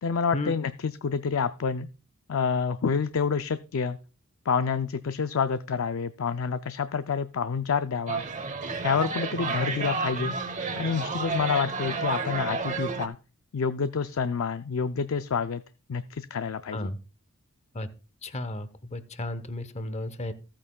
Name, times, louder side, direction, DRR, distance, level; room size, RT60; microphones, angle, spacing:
voice 1, 0.0-1.9 2.3-4.0 4.5-8.2 8.8-10.4 10.8-13.2 13.5-15.6 15.9-16.9, left 6 dB, 65° left, 11 dB, 0.4 m, -28 dB
sound 1, 8.1-13.1, right 4 dB, 35° right, 1.0 m, -31 dB
voice 2, 18.2-20.3, left 1 dB, 30° left, 13 dB, 0.9 m, -33 dB
14.5 x 8.7 x 2.3 m, 0.33 s
head